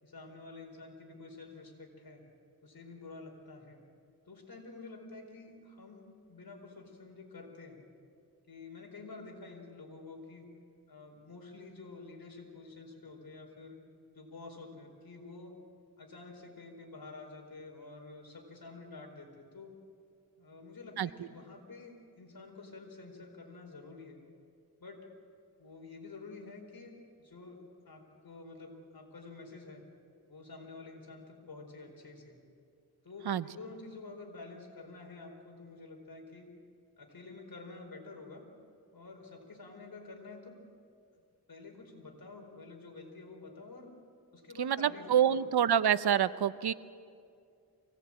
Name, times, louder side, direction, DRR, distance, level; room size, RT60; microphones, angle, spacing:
voice 1, 0.0-2.2 2.6-3.8 4.2-7.8 8.5-10.5 10.9-13.8 14.1-15.6 16.0-19.7 20.4-24.2 24.8-25.0 25.6-29.8 30.3-32.4 33.0-36.5 37.0-38.5 38.9-40.6 41.5-43.9 44.3-45.5, left 3 dB, 65° left, 2 dB, 4.7 m, -49 dB
voice 2, 21.0-21.3 33.3-33.4 44.6-46.7, right 9 dB, 85° right, 15 dB, 0.7 m, -27 dB
24.5 x 18.5 x 8.9 m, 2.3 s
wide cardioid pair, 70°, 38 cm